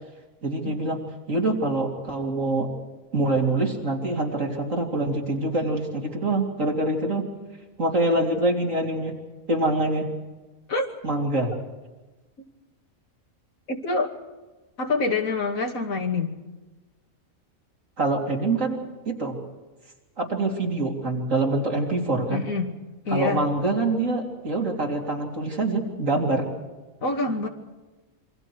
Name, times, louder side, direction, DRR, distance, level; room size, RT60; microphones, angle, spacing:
voice 1, 0.4-1.0 1.3-2.7 3.1-7.2 7.8-9.1 9.5-10.1 11.0-11.5 18.0-18.8 19.1-19.4 20.2-22.4 23.1-26.5, right 2 dB, 70° right, 0 dB, 3.9 m, -25 dB
voice 2, 13.7-14.1 14.8-16.3 22.3-22.7 23.0-23.4 27.0-27.5, left 3 dB, 80° left, 3 dB, 2.8 m, -26 dB
27.5 x 24.0 x 4.8 m, 1.2 s
omnidirectional pair, 1.4 m